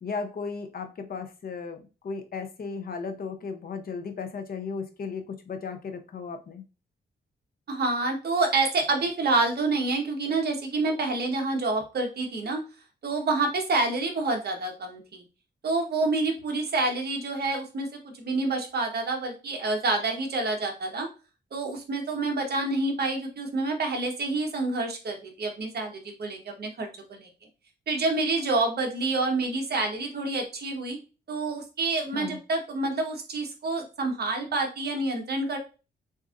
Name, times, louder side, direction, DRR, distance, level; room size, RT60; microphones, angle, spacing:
voice 1, 0.0-6.6 32.1-32.4, left 5 dB, 50° left, 7 dB, 0.7 m, -35 dB
voice 2, 7.7-12.6 13.0-15.2 15.6-21.1 21.5-27.3 27.9-31.0 31.3-35.6, right 3 dB, 55° right, 2 dB, 1.2 m, -28 dB
6.4 x 2.6 x 2.5 m, 0.32 s
wide cardioid pair, 120°, 19 cm